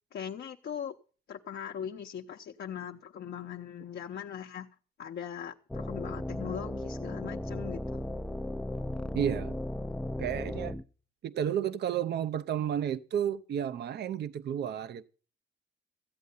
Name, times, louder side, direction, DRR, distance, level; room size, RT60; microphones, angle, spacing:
voice 1, 0.1-0.9 1.3-4.7 5.0-8.0, left 8 dB, 60° left, 0.9 m, -40 dB
sound 1, 5.7-10.8, left 1 dB, 5° left, 0.5 m, -36 dB
voice 2, 9.1-9.6 10.2-10.8 11.2-15.1, right 9 dB, 55° right, 0.7 m, -32 dB
14.5 x 8.4 x 5.4 m
cardioid pair, 90°, 20 cm